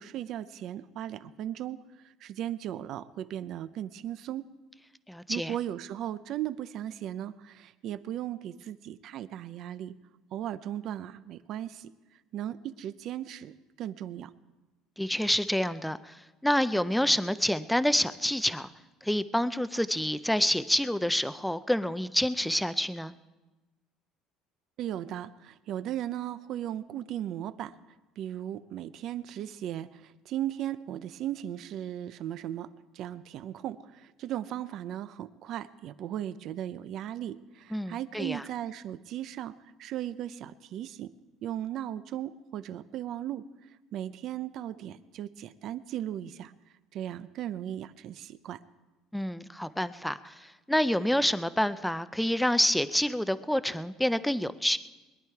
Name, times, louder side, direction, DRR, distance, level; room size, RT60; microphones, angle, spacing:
voice 1, 0.0-1.8 2.2-4.5 5.3-9.9 10.3-11.9 12.3-14.3 24.8-27.7 28.2-39.5 39.8-41.1 41.4-43.5 43.9-46.5 46.9-48.6, right 11 dB, 50° right, 15 dB, 0.6 m, -37 dB
voice 2, 5.1-5.5 15.0-16.1 16.4-18.7 19.0-23.1 37.7-38.4 49.1-50.3 50.7-54.8, equal, ahead, 14 dB, 0.4 m, -27 dB
21.5 x 11.0 x 4.7 m, 1.1 s
cardioid pair, 150°, 0 cm